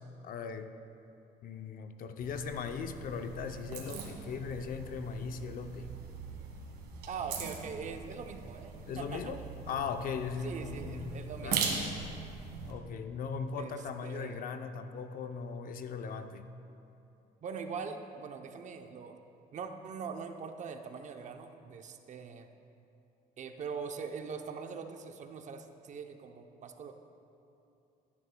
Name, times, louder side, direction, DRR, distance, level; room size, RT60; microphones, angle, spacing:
voice 1, 0.2-0.8 1.4-5.9 8.9-9.4 9.7-11.7 12.7-16.5, left 5 dB, 55° left, 8 dB, 0.6 m, -38 dB
sound 1, 2.2-12.7, right 5 dB, 80° right, 1.5 m, -40 dB
voice 2, 7.1-9.3 10.4-12.2 13.6-14.5 17.4-19.2 19.5-22.5 23.4-26.9, right 5 dB, 45° right, 6 dB, 0.7 m, -42 dB
15.0 x 9.7 x 2.2 m, 2.8 s
cardioid pair, 110°, 17 cm